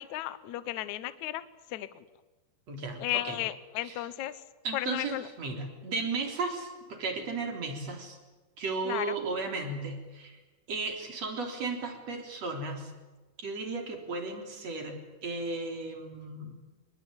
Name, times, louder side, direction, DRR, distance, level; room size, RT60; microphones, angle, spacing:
voice 1, 0.0-1.4 1.7-1.9 3.0-4.4 4.7-5.2 8.8-9.2, left 15 dB, 85° left, 14 dB, 1.6 m, -34 dB
voice 2, 2.7-3.4 3.8-4.0 4.6-8.2 8.6-10.4 10.7-12.9 13.4-16.6, right 3 dB, 40° right, 3 dB, 4.4 m, -35 dB
26.0 x 21.5 x 8.9 m, 1.2 s
omnidirectional pair, 5.0 m